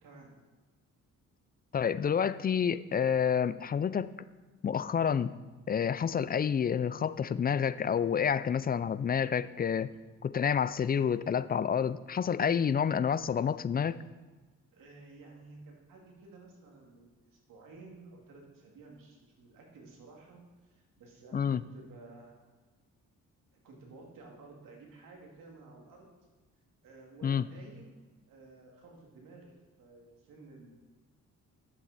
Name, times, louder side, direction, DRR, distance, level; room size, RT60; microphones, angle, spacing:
voice 1, 0.0-0.3 14.7-22.5 23.5-26.1 26.8-30.7, right 3 dB, 85° right, 0 dB, 2.2 m, -53 dB
voice 2, 1.7-4.1 4.6-5.3 5.7-9.9 10.2-14.0 21.3-21.6 27.2-27.4, left 7 dB, 30° left, 15 dB, 0.4 m, -29 dB
10.0 x 7.4 x 4.1 m, 1.3 s
cardioid pair, 75°, 32 cm